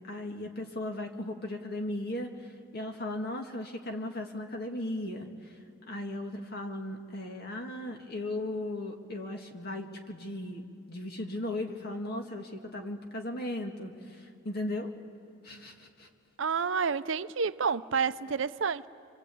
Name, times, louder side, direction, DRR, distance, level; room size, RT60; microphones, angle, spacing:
voice 1, 0.0-5.3 5.9-10.6 10.9-14.9 15.4-16.1, left 1 dB, 50° left, 1.9 m, -37 dB
voice 2, 16.4-18.9, right 5 dB, 70° right, 0.6 m, -29 dB
26.5 x 25.0 x 8.5 m
head